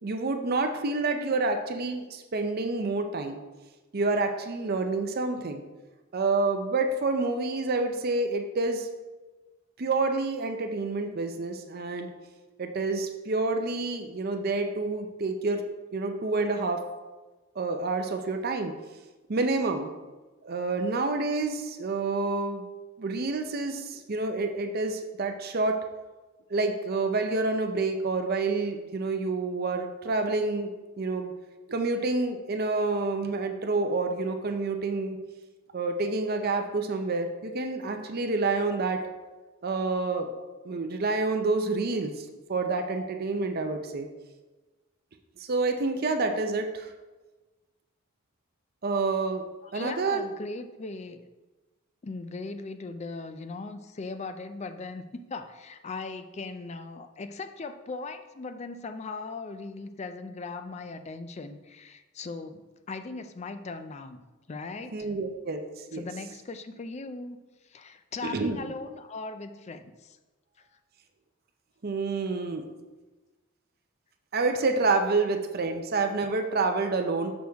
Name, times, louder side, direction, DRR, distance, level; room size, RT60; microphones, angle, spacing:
voice 1, 0.0-3.4 3.9-5.6 6.1-8.9 9.8-12.1 12.6-15.6 15.9-16.8 17.6-18.7 19.3-19.9 20.4-22.6 23.0-25.8 26.5-31.3 31.7-35.2 35.7-39.0 39.6-40.3 40.6-44.1 45.4-46.9 48.8-49.5 49.7-50.2 64.9-66.0 68.2-68.6 71.8-72.7 74.3-77.3, right 3 dB, 50° right, 5 dB, 0.6 m, -28 dB
voice 2, 49.6-51.3 52.0-64.2 64.5-65.1 65.9-67.4 67.6-70.2, left 3 dB, 35° left, 9 dB, 0.4 m, -39 dB
6.3 x 6.1 x 3.5 m, 1.2 s
head